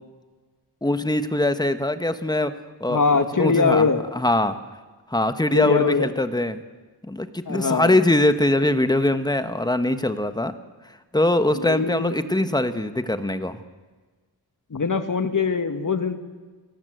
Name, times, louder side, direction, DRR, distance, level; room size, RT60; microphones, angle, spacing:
voice 1, 0.8-2.5 2.8-3.9 4.1-4.6 5.1-6.6 7.1-10.5 11.1-13.6, left 1 dB, 10° left, 10 dB, 1.2 m, -22 dB
voice 2, 2.9-4.0 5.5-6.1 7.5-8.0 11.5-12.4 14.7-16.2, left 4 dB, 50° left, 8 dB, 1.9 m, -22 dB
29.5 x 19.0 x 8.0 m, 1.4 s
wide cardioid pair, 100°, 41 cm